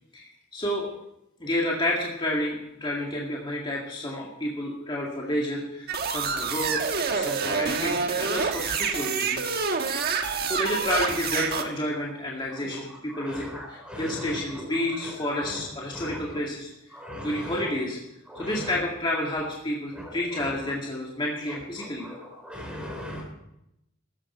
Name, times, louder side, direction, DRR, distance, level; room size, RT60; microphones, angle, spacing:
voice 1, 0.1-0.9 1.4-6.8 7.1-9.5 10.5-17.0 17.2-18.0 18.4-22.1, left 1 dB, 25° left, -3 dB, 2.1 m, -30 dB
sound 1, 5.9-11.6, right 5 dB, 50° right, 1.3 m, -27 dB
voice 2, 13.1-14.6 15.4-15.6 15.9-16.4 16.9-17.6 18.3-18.7 20.0-20.1 20.4-20.5 22.0-22.2 22.4-23.2, left 1 dB, 5° right, -1 dB, 4.2 m, -38 dB
17.0 x 14.0 x 4.4 m, 0.83 s
head